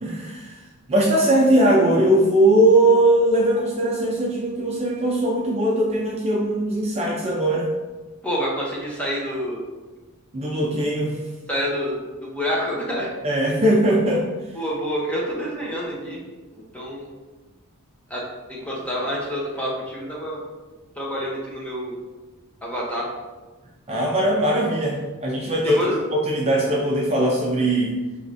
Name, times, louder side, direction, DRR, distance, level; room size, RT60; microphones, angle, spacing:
voice 1, 0.0-0.6 0.9-7.7 10.3-11.2 13.2-14.3 23.9-25.8 26.1-27.9, right 1 dB, 30° right, -3 dB, 0.4 m, -20 dB
voice 2, 8.2-9.6 11.5-13.1 14.5-16.2 16.5-17.1 18.1-20.4 21.0-22.0 22.6-23.1 25.6-26.0, equal, 5° left, -5 dB, 0.8 m, -28 dB
4.8 x 3.1 x 2.6 m, 1.2 s
head